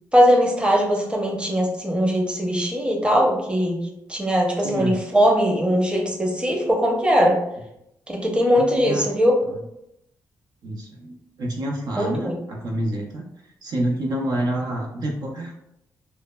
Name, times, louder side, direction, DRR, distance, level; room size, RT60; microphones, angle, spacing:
voice 1, 0.1-3.8 4.1-7.4 8.1-9.4 12.0-12.3, equal, 15° right, 0 dB, 0.7 m, -20 dB
voice 2, 4.6-4.9 8.5-9.1 9.4-9.7 10.6-15.5, right 1 dB, 65° right, -1 dB, 0.5 m, -28 dB
3.1 x 2.1 x 2.2 m, 0.83 s
supercardioid pair, 60°, 7 cm